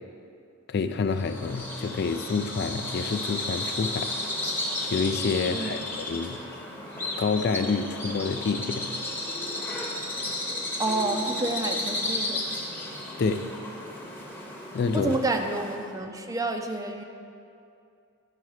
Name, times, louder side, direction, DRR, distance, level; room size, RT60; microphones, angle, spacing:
voice 1, 0.7-4.2 4.9-6.4 7.2-8.9 13.2-13.5 14.7-15.2, left 4 dB, 50° left, 9 dB, 0.4 m, -28 dB
Bird vocalization bird call bird song, 1.1-15.9, left 1 dB, 10° left, 0.9 m, -33 dB
voice 2, 5.5-5.8 10.8-12.4 14.9-17.0, right 2 dB, 15° right, 4 dB, 0.5 m, -29 dB
10.0 x 4.7 x 6.3 m, 2.5 s
head